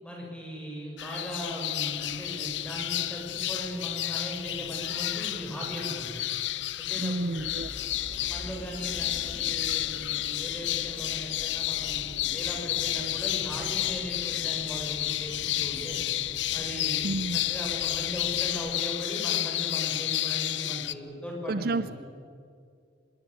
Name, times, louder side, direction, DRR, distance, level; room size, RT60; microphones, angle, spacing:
voice 1, 0.0-6.1 6.8-7.4 8.3-16.0 16.5-17.0 17.3-21.8, equal, 5° left, -1 dB, 6.7 m, -38 dB
sound 1, 1.0-20.9, left 14 dB, 70° left, 0.7 m, -31 dB
sound 2, 1.8-18.1, left 1 dB, 85° right, 5.7 m, -53 dB
voice 2, 7.0-7.7 17.0-17.4 21.5-21.9, right 2 dB, 55° right, 15 dB, 0.6 m, -30 dB
sound 3, 7.4-18.6, equal, 35° left, 4.8 m, -47 dB
25.0 x 22.0 x 8.6 m, 2.2 s
head